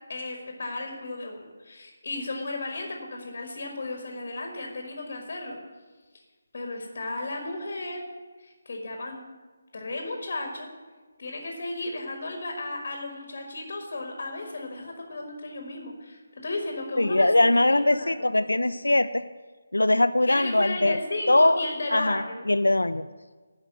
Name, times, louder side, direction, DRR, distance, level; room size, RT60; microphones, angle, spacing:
voice 1, 0.1-5.6 6.1-6.2 6.5-8.0 8.4-9.2 9.7-10.7 11.2-18.1 18.4-18.5 20.3-22.4, left 2 dB, 45° left, 2 dB, 1.7 m, -34 dB
voice 2, 17.0-19.2 19.7-21.0 21.3-21.6 21.9-23.1, left 1 dB, 80° left, 12 dB, 0.3 m, -21 dB
11.0 x 5.0 x 8.1 m, 1.3 s
figure-of-eight pair, 150°, 0 cm